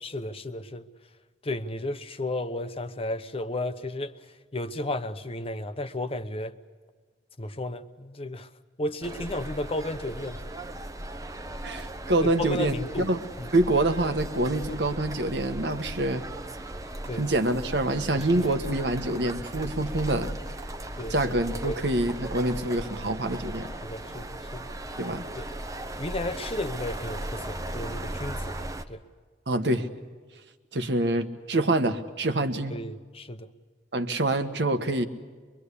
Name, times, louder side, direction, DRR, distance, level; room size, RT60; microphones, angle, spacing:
voice 1, 0.0-0.9 1.4-4.2 4.5-6.5 7.4-8.5 8.8-10.4 12.2-13.1 13.4-13.5 17.1-17.2 18.1-18.3 21.0-21.2 21.6-21.8 23.8-24.7 25.4-25.5 26.0-28.5 28.9-29.0 32.7-33.5, left 1 dB, 35° left, 10 dB, 0.9 m, -33 dB
sound 1, 9.0-28.8, right 1 dB, 20° right, 1.0 m, -37 dB
voice 2, 11.6-13.2 13.5-16.2 17.1-20.4 21.1-23.7 25.0-25.2 29.5-29.9 30.7-32.8 33.9-35.1, right 2 dB, 70° right, 8 dB, 1.4 m, -26 dB
23.5 x 23.0 x 8.4 m, 1.5 s
head